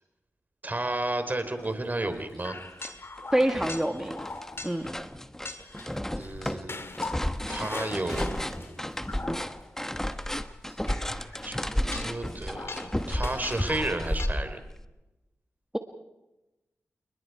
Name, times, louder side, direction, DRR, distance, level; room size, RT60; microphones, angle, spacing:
voice 1, 0.6-2.6 5.8-6.9 7.5-8.8 11.1-14.6, right 2 dB, 35° right, 8 dB, 3.8 m, -33 dB
sound 1, 1.6-1.8 2.4-4.9 5.5-9.8 10.1-14.3, left 3 dB, 50° left, 1.8 m, -41 dB
sound 2, 1.7-1.8 2.2-2.9 3.2-14.8, equal, 10° left, 1.2 m, -33 dB
voice 2, 3.3-4.2 4.6-4.9, right 1 dB, 10° right, 5 dB, 1.5 m, -26 dB
28.5 x 20.5 x 4.7 m, 1.0 s
cardioid pair, 45°, 5 cm